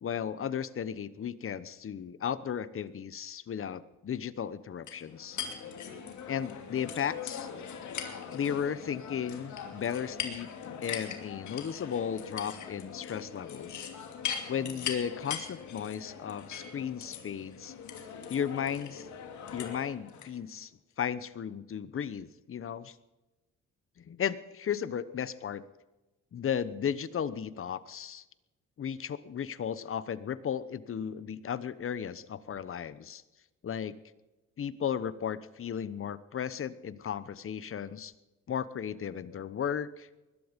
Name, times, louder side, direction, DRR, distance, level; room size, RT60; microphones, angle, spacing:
voice 1, 0.0-5.4 6.3-7.5 8.3-10.5 10.8-13.9 14.5-17.7 18.3-19.1 19.5-20.7 21.0-23.0 24.0-25.6 26.3-28.2 28.8-33.2 33.6-33.9 34.6-38.1 38.5-40.1, left 8 dB, 45° left, 16 dB, 1.0 m, -35 dB
sound 1, 4.9-20.3, left 7 dB, 70° left, 2.7 m, -41 dB
20.5 x 12.0 x 5.2 m, 1.1 s
cardioid pair, 90°, 30 cm